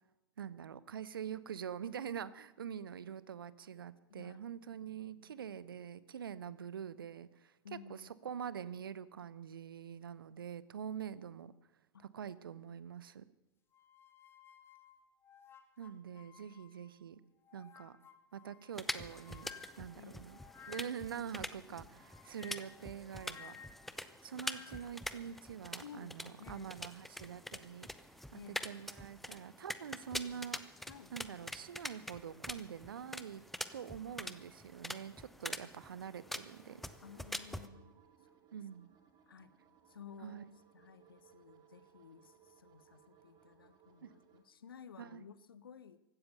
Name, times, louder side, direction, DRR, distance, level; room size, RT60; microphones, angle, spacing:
voice 1, 0.4-7.6 7.9-11.5 12.0-13.2 15.8-17.2 17.5-18.0 18.3-19.5 19.8-20.4 20.7-23.5 24.2-27.9 28.3-30.6 31.1-33.4 33.7-36.8 38.5-38.9 40.2-40.4 44.0-44.1 45.0-45.2, right 8 dB, 65° right, 17 dB, 0.8 m, -45 dB
voice 2, 4.1-4.4 4.8-5.5 6.5-6.6 7.6-8.1 11.1-11.4 11.9-12.1 12.5-12.7 19.9-20.3 21.7-21.8 24.3-24.4 24.7-24.8 25.8-26.8 28.3-28.8 30.9-31.1 34.2-34.4 37.0-38.0 39.3-39.5 39.9-46.0, left 7 dB, 70° left, 16 dB, 1.0 m, -55 dB
sound 1, 13.7-17.0 17.4-21.2 22.0-25.0, left 7 dB, 20° left, 1.0 m, -57 dB
sound 2, 18.7-37.7, left 1 dB, ahead, 0.7 m, -45 dB
sound 3, 36.1-44.4, right 8 dB, 35° right, 2.1 m, -65 dB
16.0 x 13.0 x 6.7 m, 0.95 s
figure-of-eight pair, 95°, 12 cm